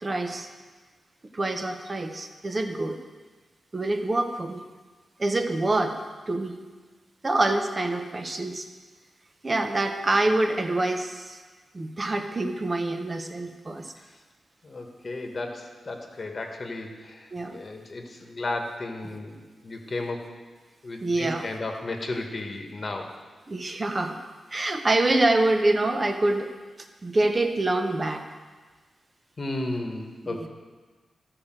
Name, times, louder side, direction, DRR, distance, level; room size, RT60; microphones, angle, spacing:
voice 1, 0.0-0.5 1.3-3.0 3.7-4.6 5.2-6.0 6.3-6.6 7.2-8.7 9.4-11.4 11.7-13.9 17.3-17.6 21.0-21.5 23.5-24.2 24.5-26.5 27.0-28.2 30.2-30.5, right 2 dB, 25° right, 6 dB, 0.9 m, -26 dB
voice 2, 14.6-20.3 20.8-23.1 29.4-30.5, left 2 dB, 35° left, 3 dB, 1.4 m, -34 dB
14.0 x 4.9 x 7.5 m, 1.4 s
wide cardioid pair, 120°, 0 cm